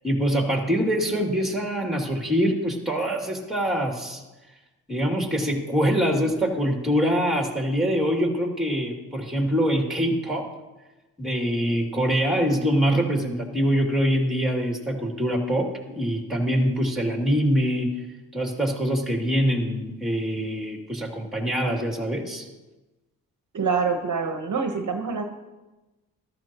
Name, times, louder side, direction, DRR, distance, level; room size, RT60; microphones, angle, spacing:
voice 1, 0.0-4.2 4.9-10.5 11.2-17.9 18.3-22.5, equal, ahead, 1 dB, 2.8 m, -24 dB
voice 2, 23.5-25.2, right 5 dB, 50° right, 4 dB, 1.3 m, -25 dB
13.5 x 12.5 x 3.0 m, 1.1 s
supercardioid pair, 60°, 38 cm